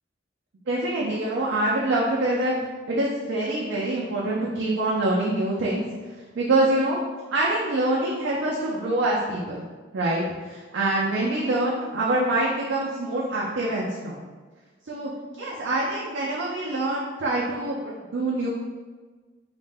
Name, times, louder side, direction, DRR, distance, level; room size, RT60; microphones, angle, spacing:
voice 1, 0.7-2.6 2.9-5.8 6.4-7.0 7.3-9.6 9.9-14.2 14.9-18.5, right 2 dB, 70° right, -5 dB, 0.4 m, -25 dB
2.5 x 2.1 x 3.3 m, 1.4 s
head